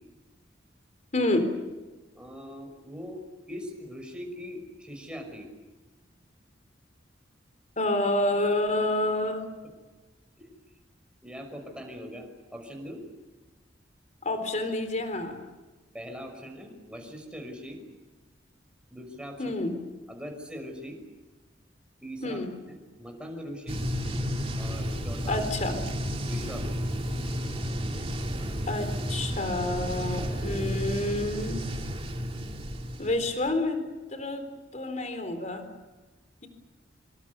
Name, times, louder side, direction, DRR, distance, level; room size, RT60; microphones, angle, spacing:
voice 1, 1.1-1.5 7.8-9.5 14.2-15.4 19.4-19.8 22.2-22.5 25.3-25.8 28.7-31.6 33.0-33.8 34.1-34.4 34.7-35.7, left 2 dB, 40° left, 7 dB, 3.9 m, -28 dB
voice 2, 2.1-3.2 3.5-5.5 10.4-10.5 11.2-13.0 15.9-17.8 18.9-19.5 20.1-21.0 22.0-23.8 24.6-25.4 26.3-26.9, equal, 5° right, 3 dB, 5.9 m, -41 dB
sound 1, 23.7-33.5, equal, 30° right, 2.7 m, -32 dB
26.0 x 25.5 x 7.0 m, 1.2 s
head